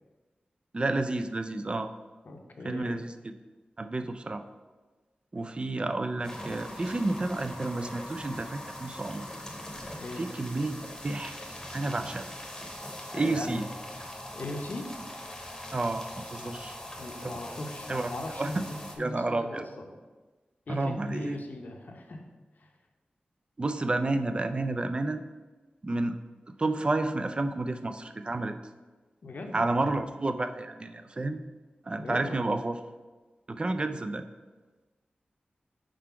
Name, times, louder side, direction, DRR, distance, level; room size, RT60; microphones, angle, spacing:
voice 1, 0.7-1.9 2.6-3.3 3.8-4.4 5.3-9.3 10.2-11.3 11.7-12.2 13.1-13.6 15.7-16.7 17.2-17.3 17.9-18.1 18.4-18.6 19.0-19.6 20.7-21.4 23.6-25.2 25.8-26.2 26.6-28.6 29.5-31.4 31.9-32.8 33.5-34.2, right 2 dB, 30° right, 8 dB, 0.4 m, -30 dB
voice 2, 2.2-3.0 9.9-10.2 13.1-13.6 14.3-14.9 16.4-16.6 17.0-20.0 20.7-22.3 22.6-22.7 29.2-29.9 32.0-32.5, left 2 dB, 65° left, 3 dB, 0.7 m, -39 dB
sound 1, 6.2-19.0, left 1 dB, 20° left, 0.9 m, -42 dB
4.8 x 3.8 x 5.7 m, 1.3 s
wide cardioid pair, 100°, 3 cm